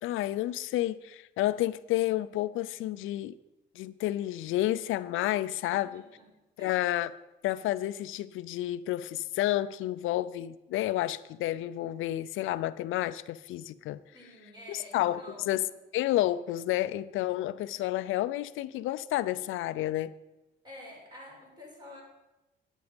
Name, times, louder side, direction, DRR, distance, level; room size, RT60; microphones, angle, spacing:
voice 1, 0.0-3.4 3.8-6.0 6.6-7.1 7.4-14.0 14.7-15.2 15.5-15.6 15.9-20.1, left 14 dB, 90° left, 15 dB, 0.5 m, -30 dB
voice 2, 5.7-6.3 6.6-6.7 14.1-15.6 20.6-22.0, left 1 dB, 20° right, -2 dB, 4.9 m, -49 dB
11.0 x 9.3 x 5.2 m, 0.99 s
cardioid pair, 90°, 20 cm